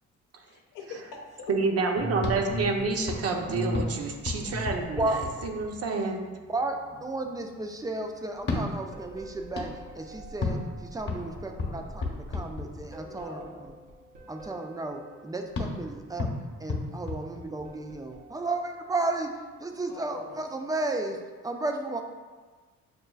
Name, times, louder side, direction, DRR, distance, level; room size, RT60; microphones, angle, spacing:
voice 1, 0.4-1.5 11.2-11.9 13.0-13.6 19.9-20.4, left 3 dB, 90° left, 1 dB, 0.7 m, -44 dB
voice 2, 1.5-6.2, right 4 dB, 55° right, 3 dB, 0.6 m, -28 dB
sound 1, 1.9-11.5 12.7-15.5 17.2-18.4, equal, 90° right, 0.9 m, -40 dB
sound 2, 2.1-6.0 8.3-13.2 15.5-18.0, left 3 dB, 40° left, 0.8 m, -35 dB
voice 3, 7.0-13.4 14.3-16.3 16.6-19.3 19.6-21.2 21.4-22.0, right 2 dB, 15° right, 4 dB, 0.3 m, -33 dB
6.6 x 2.4 x 2.3 m, 1.4 s
cardioid pair, 90°, 30 cm